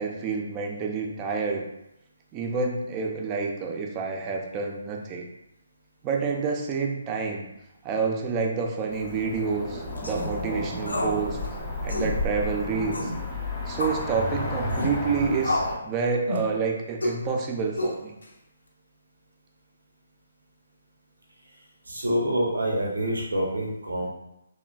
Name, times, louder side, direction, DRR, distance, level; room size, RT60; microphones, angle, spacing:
voice 1, 0.0-1.7 2.3-5.3 6.0-7.5 7.8-11.4 11.8-13.1 13.7-18.1, right 5 dB, 25° right, 1 dB, 0.4 m, -28 dB
Cricket / Motor vehicle (road), 8.9-15.8, left 1 dB, 20° left, 0.7 m, -32 dB
sound 1, 10.0-10.3 10.9-11.2 11.4-11.5 11.9-12.1 12.9-13.2 13.8-14.0 14.7-14.9 15.4-15.8 16.3-16.5 17.0-17.2 17.8-18.2, left 1 dB, 80° left, 0.5 m, -29 dB
voice 2, 21.9-24.1, equal, 80° right, -2 dB, 0.5 m, -26 dB
3.1 x 2.1 x 2.2 m, 0.86 s
figure-of-eight pair, 145°, 0 cm